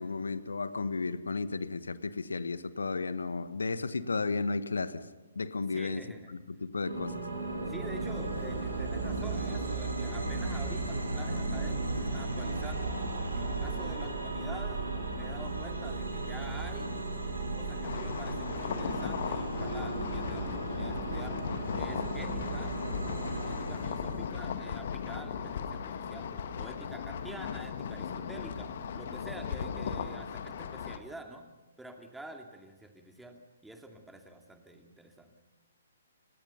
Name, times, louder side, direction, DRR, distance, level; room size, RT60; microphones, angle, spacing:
voice 1, 0.0-5.1 5.3-6.0 6.3-7.1, left 4 dB, 70° left, 14 dB, 1.3 m, -33 dB
voice 2, 5.7-6.3 7.7-12.9 13.3-14.9 15.1-17.0 17.5-21.5 21.8-22.7 23.4-31.5 31.8-35.3, right 1 dB, 5° right, 4 dB, 2.5 m, -48 dB
sound 1, 6.8-24.2, right 3 dB, 75° right, 7.4 m, -35 dB
sound 2, 17.8-31.0, left 7 dB, 50° left, 1.8 m, -37 dB
29.5 x 18.0 x 5.6 m, 1.2 s
figure-of-eight pair, 125°, 0 cm